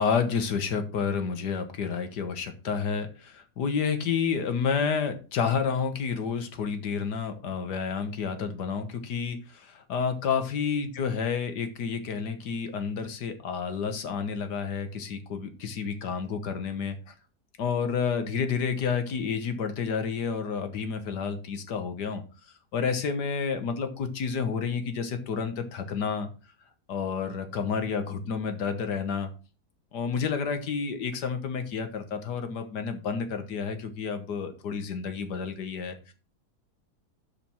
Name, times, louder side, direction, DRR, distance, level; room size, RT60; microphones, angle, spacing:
voice 1, 0.0-17.1 17.6-22.2 22.7-26.3 26.9-29.3 29.9-36.1, left 6 dB, 85° left, 8 dB, 1.8 m, -30 dB
7.1 x 5.1 x 6.1 m, 0.34 s
omnidirectional pair, 1.7 m